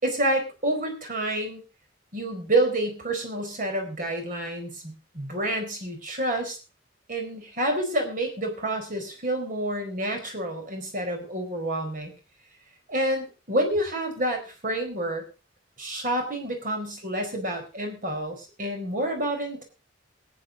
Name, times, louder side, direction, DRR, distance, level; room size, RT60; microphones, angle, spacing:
voice 1, 0.0-1.6 2.1-6.6 7.1-12.1 12.9-15.2 15.8-19.6, right 1 dB, 45° right, 4 dB, 4.4 m, -28 dB
22.0 x 9.1 x 3.9 m, 0.32 s
head